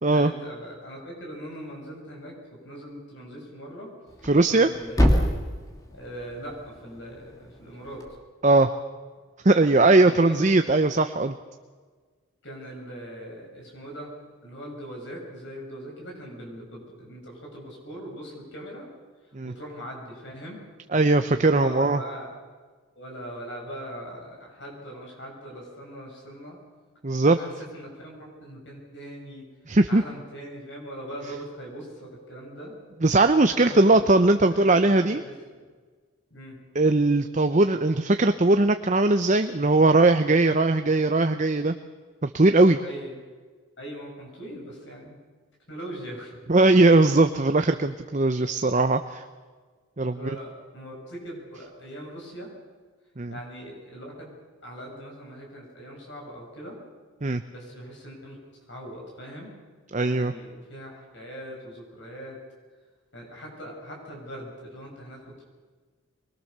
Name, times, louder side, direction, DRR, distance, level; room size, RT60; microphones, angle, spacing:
voice 1, 0.1-2.4 2.6-3.9 4.5-5.3 5.9-8.1 9.6-10.8 12.4-14.1 14.4-18.9 19.4-20.6 21.2-22.3 23.0-26.6 27.2-29.4 29.9-32.7 33.5-35.2 35.5-35.7 36.3-36.6 42.8-43.2 43.8-45.2 45.7-46.3 46.6-46.8 50.0-52.5 53.3-54.3 54.6-56.8 57.5-58.4 58.7-59.5 60.0-62.4 63.1-65.2, equal, 55° left, -1 dB, 7.3 m, -41 dB
Thump thud, 4.1-8.2, equal, 15° left, 2.6 m, -28 dB
voice 2, 4.2-4.7 8.4-8.7 9.4-11.3 19.3-19.5 20.9-22.0 27.0-27.4 29.7-30.0 33.0-35.2 36.7-41.7 42.2-42.8 46.5-49.2 50.0-50.3 53.2-53.3 57.2-57.4 59.9-60.3, right 2 dB, 35° right, 8 dB, 0.7 m, -20 dB
24.5 x 22.0 x 6.8 m, 1.4 s
head